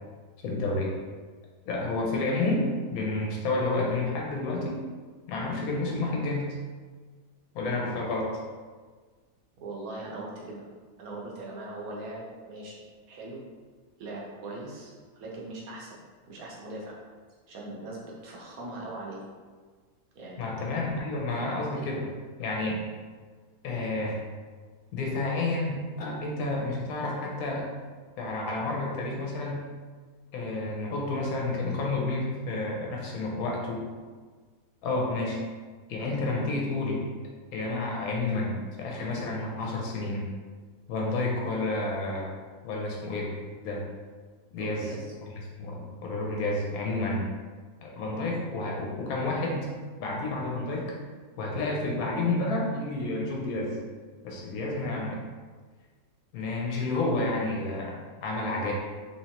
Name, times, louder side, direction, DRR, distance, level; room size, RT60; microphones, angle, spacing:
voice 1, 0.4-0.9 1.6-4.8 5.3-6.5 7.5-8.4 20.4-22.1 22.4-22.9 23.6-24.2 24.9-27.7 28.2-29.6 30.3-33.9 34.8-35.4 35.9-37.0 37.5-40.3 40.9-42.3 42.6-43.3 43.6-43.9 44.5-44.8 45.6-47.3 47.8-49.7 50.0-51.0 51.4-53.8 54.2-55.2 56.3-58.7, left 2 dB, 80° left, -1 dB, 1.2 m, -30 dB
voice 2, 9.6-10.7 11.0-12.8 13.1-13.4 14.0-16.0 16.3-17.0 17.5-19.2 20.1-21.1 44.6-45.1, right 2 dB, 75° right, -4 dB, 1.3 m, -40 dB
3.5 x 3.1 x 2.9 m, 1.5 s
omnidirectional pair, 1.6 m